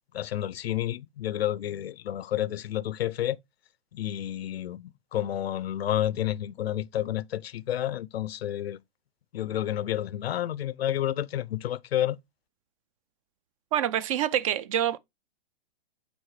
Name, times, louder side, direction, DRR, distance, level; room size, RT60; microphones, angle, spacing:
voice 1, 0.1-3.4 3.9-8.8 9.3-12.2, left 12 dB, 90° left, 0.5 m, -30 dB
voice 2, 13.7-15.0, right 10 dB, 35° right, 0.4 m, -26 dB
9.2 x 3.5 x 3.1 m
hypercardioid pair, 135°, 30 cm